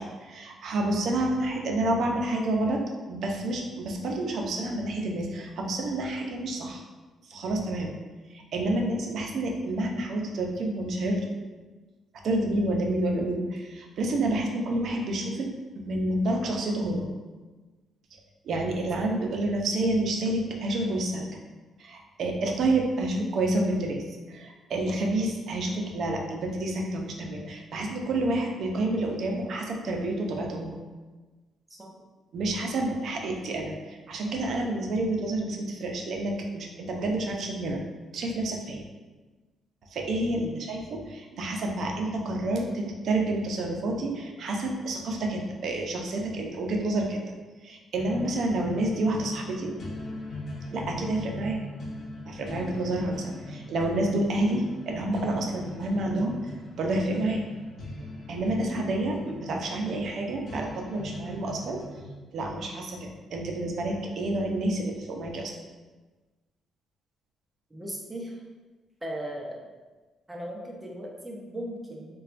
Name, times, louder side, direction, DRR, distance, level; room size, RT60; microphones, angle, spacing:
voice 1, 0.0-2.8 3.1-6.8 7.3-7.9 8.3-11.3 12.2-15.5 15.8-17.1 18.4-21.3 21.8-30.8 32.3-37.8 38.1-38.8 39.9-47.2 47.6-49.7 50.7-51.6 52.2-56.4 56.8-57.4 58.3-61.8 62.3-65.5, right 1 dB, 65° right, 1 dB, 0.5 m, -29 dB
voice 2, 40.3-40.6 67.7-68.4 69.0-69.7 70.3-72.1, right 1 dB, 10° right, -2 dB, 0.7 m, -37 dB
sound 1, 48.0-62.0, left 1 dB, 50° left, 0.9 m, -41 dB
4.1 x 2.3 x 2.5 m, 1.2 s
cardioid pair, 90°, 0 cm